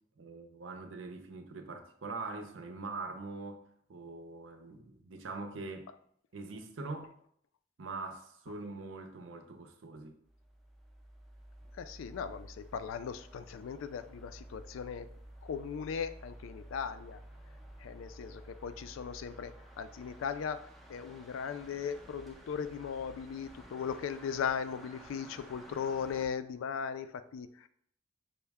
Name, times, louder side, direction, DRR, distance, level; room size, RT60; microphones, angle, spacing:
voice 1, 0.2-3.6 3.9-5.9 6.3-7.2 7.8-10.2, right 3 dB, 80° right, 0.6 m, -43 dB
sound 1, 10.2-26.3, right 1 dB, ahead, 0.3 m, -52 dB
voice 2, 11.7-15.1 15.4-17.2 17.8-27.7, left 7 dB, 90° left, 0.3 m, -38 dB
5.5 x 2.1 x 3.4 m
head